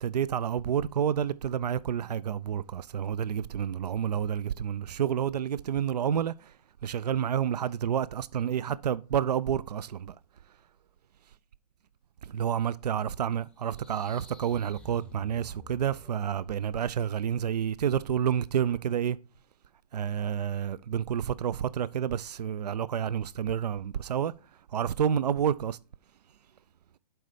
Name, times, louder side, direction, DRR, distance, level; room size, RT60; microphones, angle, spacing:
voice 1, 0.0-6.5 6.8-10.1 12.2-19.2 19.9-24.3 24.7-25.8, right 9 dB, 80° right, 0.5 m, -29 dB
sound 1, 13.5-16.4, left 3 dB, 5° left, 0.6 m, -53 dB
7.8 x 4.4 x 5.0 m
hypercardioid pair, 135°, 20 cm